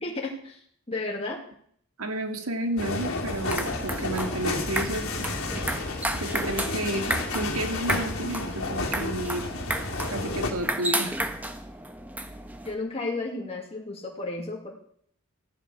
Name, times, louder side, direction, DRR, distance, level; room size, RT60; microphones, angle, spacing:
voice 1, 0.0-1.4 12.6-14.7, left 2 dB, 30° left, -2 dB, 2.3 m, -33 dB
voice 2, 2.0-5.3 6.2-9.5 10.1-11.2, right 1 dB, 85° right, 6 dB, 2.3 m, -31 dB
sound 1, 2.8-10.5, left 2 dB, 80° left, 2.7 m, -31 dB
sound 2, 3.3-12.7, right 1 dB, 10° right, 1.1 m, -33 dB
14.5 x 11.0 x 6.2 m, 0.63 s
head